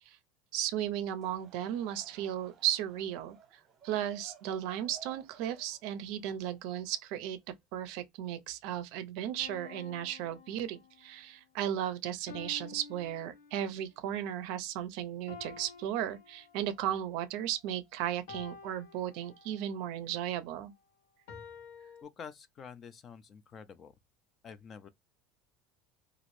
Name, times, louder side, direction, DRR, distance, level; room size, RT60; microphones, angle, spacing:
voice 1, 0.5-3.4 3.8-7.4 7.7-20.7, right 11 dB, 60° right, 0.5 m, -35 dB
Laughter / Crowd, 1.0-7.4, right 8 dB, 25° right, 0.8 m, -58 dB
sound 1, 9.4-11.2 12.3-13.9 15.3-16.9 18.3-19.8 21.3-22.0, left 5 dB, 90° left, 0.9 m, -50 dB
voice 2, 22.0-24.0 24.4-24.9, left 6 dB, 25° left, 0.3 m, -48 dB
2.9 x 2.5 x 3.0 m
cardioid pair, 170°, 0 cm